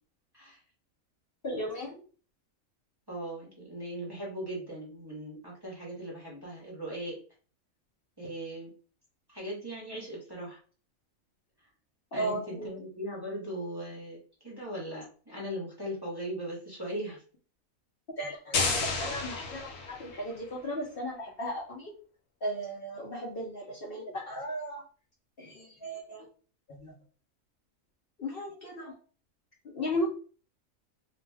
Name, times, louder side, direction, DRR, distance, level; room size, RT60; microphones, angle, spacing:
voice 1, 1.4-2.0 12.1-12.7 18.2-21.9 22.4-24.8 25.4-26.3 26.7-26.9 28.2-29.0 29.6-30.1, equal, 55° left, -4 dB, 0.7 m, -36 dB
voice 2, 3.1-7.2 8.2-8.7 9.3-10.6 12.1-14.2 14.4-17.2, right 1 dB, 20° right, -5 dB, 0.8 m, -39 dB
sound 1, 18.5-20.4, left 4 dB, 70° left, 1.1 m, -31 dB
2.5 x 2.2 x 3.3 m, 0.39 s
omnidirectional pair, 1.4 m